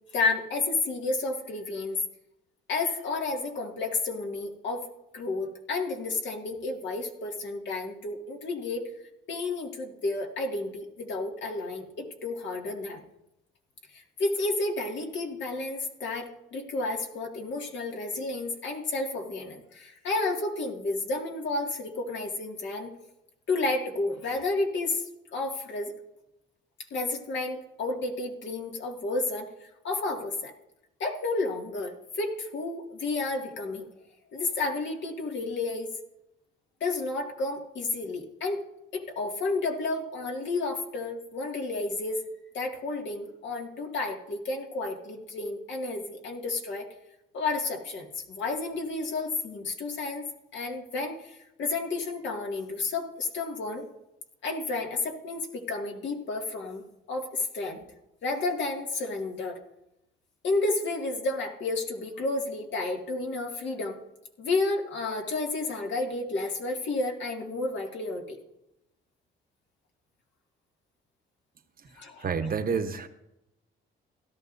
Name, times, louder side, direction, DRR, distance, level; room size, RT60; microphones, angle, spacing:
voice 1, 0.1-2.0 2.7-4.9 5.1-8.9 9.3-13.0 13.9-22.9 23.5-25.0 25.3-25.9 26.9-30.5 31.0-33.9 34.3-35.9 36.8-38.6 38.9-42.2 42.5-46.9 47.3-53.9 54.4-56.8 57.1-57.8 58.2-59.6 60.4-64.0 64.4-68.4 72.0-72.2, left 3 dB, 65° left, 1 dB, 2.2 m, -31 dB
voice 2, 71.8-73.1, right 5 dB, 45° right, 7 dB, 1.1 m, -30 dB
16.5 x 12.5 x 2.7 m, 0.87 s
cardioid pair, 90°, 20 cm